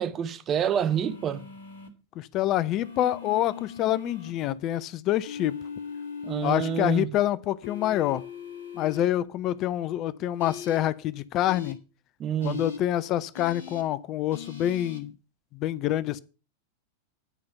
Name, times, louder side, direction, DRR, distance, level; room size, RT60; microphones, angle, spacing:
voice 1, 0.0-1.5 6.2-7.2 12.2-12.6, right 8 dB, 30° right, 0.7 m, -28 dB
sound 1, 0.6-1.9 2.8-4.3 5.2-6.9 7.6-9.0 10.4-10.8 11.5-11.7 12.4-12.8 13.3-13.8 14.3-15.0, left 6 dB, 65° left, 1.7 m, -40 dB
voice 2, 2.2-5.6 6.4-8.2 8.7-11.8 12.4-15.1 15.5-16.2, left 13 dB, 35° left, 0.5 m, -27 dB
10.0 x 5.1 x 6.8 m
figure-of-eight pair, 90°, 0 cm